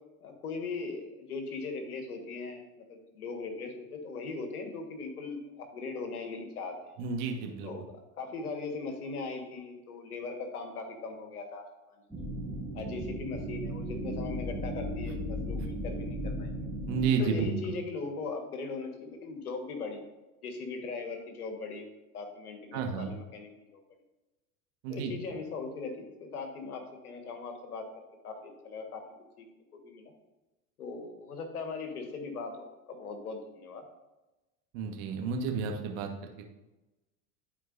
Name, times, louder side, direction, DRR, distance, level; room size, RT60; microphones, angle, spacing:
voice 1, 0.2-2.6 2.9-6.9 7.6-7.9 8.2-12.0 12.7-16.6 17.2-20.0 20.4-21.9 22.1-23.8 24.9-27.9 28.2-29.0 29.4-29.5 29.7-30.1 30.8-33.8, left 4 dB, 80° left, 5 dB, 1.5 m, -39 dB
voice 2, 7.0-7.7 15.6-15.7 16.9-17.8 22.7-23.1 24.8-25.1 34.7-36.1, right 5 dB, 60° right, 3 dB, 1.4 m, -31 dB
sound 1, 12.1-17.1, equal, ahead, 2.1 m, -36 dB
12.5 x 4.5 x 2.6 m, 1.0 s
hypercardioid pair, 85°, 44 cm